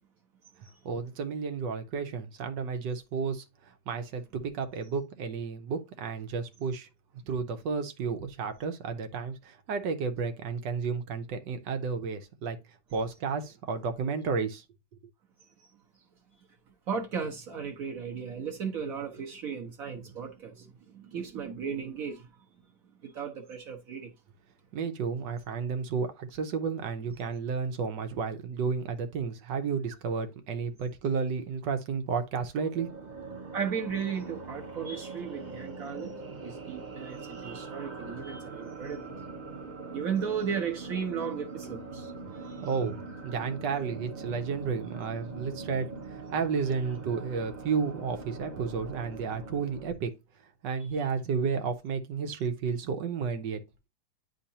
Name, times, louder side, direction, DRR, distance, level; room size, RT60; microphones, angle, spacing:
voice 1, 0.8-6.9 7.3-12.6 12.9-14.6 24.7-32.9 42.6-50.1 50.6-53.6, right 5 dB, 85° right, 1.5 m, -32 dB
voice 2, 16.9-22.3 23.0-24.1 33.5-39.1 39.9-42.6, right 6 dB, 60° right, 1.2 m, -35 dB
sound 1, 32.6-49.9, right 4 dB, 35° right, 0.8 m, -42 dB
10.0 x 3.7 x 2.7 m
omnidirectional pair, 1.9 m